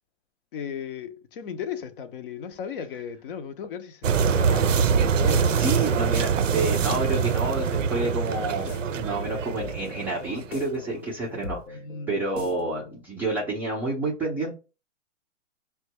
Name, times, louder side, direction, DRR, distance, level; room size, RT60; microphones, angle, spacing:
voice 1, 0.5-4.8 5.1-5.8 11.7-12.2, left 7 dB, 45° left, 0.6 m, -36 dB
sound 1, 4.0-10.6, right 6 dB, 85° right, 0.5 m, -24 dB
voice 2, 5.6-11.8 12.1-14.6, right 2 dB, 5° right, 0.4 m, -29 dB
sound 2, 6.5-13.0, left 5 dB, 75° left, 1.0 m, -42 dB
5.7 x 2.2 x 2.9 m
figure-of-eight pair, 120°, 37 cm